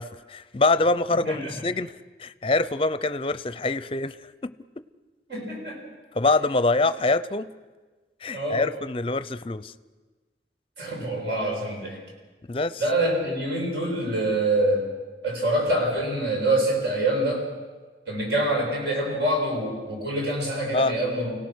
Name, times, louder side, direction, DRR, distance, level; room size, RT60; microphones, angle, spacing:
voice 1, 0.0-1.9 2.2-4.2 4.4-4.5 6.1-7.5 8.2-9.7 12.5-12.8 20.7-20.9, left 3 dB, 30° left, 13 dB, 0.6 m, -24 dB
voice 2, 1.1-1.5 5.3-5.8 8.3-8.6 10.8-12.0 12.8-14.9 15.2-17.4 18.1-21.4, right 1 dB, 70° right, -1 dB, 7.3 m, -25 dB
30.0 x 17.5 x 6.3 m, 1.3 s
head